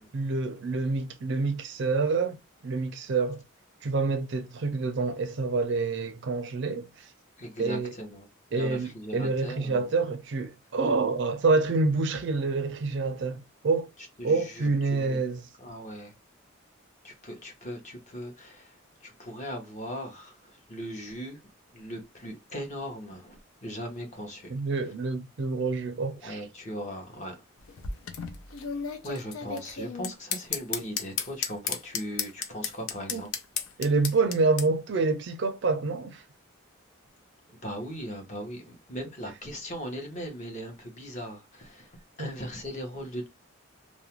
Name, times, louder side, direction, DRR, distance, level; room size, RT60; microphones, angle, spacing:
voice 1, 0.1-2.4 2.6-3.4 3.8-7.1 7.6-7.9 8.5-13.9 14.2-15.4 24.5-26.4 33.1-33.2 33.8-36.2 42.2-42.3, right 3 dB, 55° right, 0.4 m, -27 dB
voice 2, 7.4-8.3 8.5-9.9 14.0-15.2 15.6-16.1 17.0-21.4 21.7-24.9 26.2-27.5 28.9-33.3 33.7-33.8 37.5-43.3, equal, 35° left, 0.8 m, -39 dB
sound 1, 27.6-34.7, left 7 dB, 75° left, 0.5 m, -33 dB
2.4 x 2.1 x 2.9 m
head